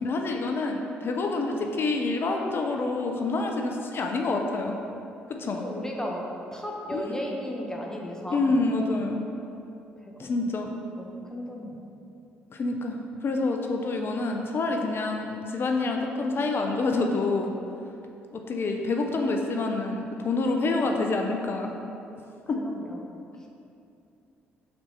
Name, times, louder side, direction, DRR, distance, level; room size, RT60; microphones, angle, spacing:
voice 1, 0.0-4.8 5.4-5.6 6.9-7.2 8.3-9.2 10.2-10.7 12.5-17.5 18.3-21.8 22.5-22.6, left 3 dB, 50° left, 3 dB, 0.6 m, -27 dB
voice 2, 5.5-6.2 6.5-8.6 10.0-10.5 11.0-11.8 22.5-23.0, equal, 10° left, -1 dB, 1.0 m, -35 dB
4.3 x 4.2 x 5.4 m, 2.7 s
hypercardioid pair, 55°, 5 cm